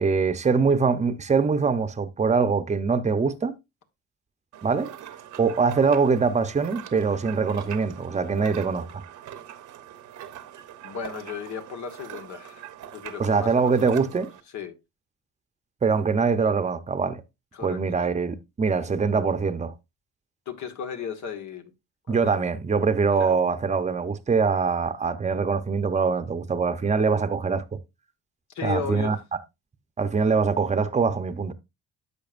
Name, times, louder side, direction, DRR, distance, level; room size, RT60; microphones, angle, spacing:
voice 1, 0.0-3.5 4.6-4.9 5.4-9.0 13.2-14.3 15.8-17.2 17.6-19.7 22.1-27.8 28.6-29.2 30.0-31.5, right 5 dB, 25° right, 0.8 m, -23 dB
sound 1, 4.5-14.4, right 11 dB, 75° right, 1.0 m, -43 dB
voice 2, 10.8-12.7 12.9-14.2 14.5-14.7 17.5-17.8 20.5-21.6 22.1-22.4 23.2-23.4 28.5-29.1, left 7 dB, 70° left, 1.5 m, -35 dB
10.5 x 6.5 x 2.5 m
cardioid pair, 90°, 30 cm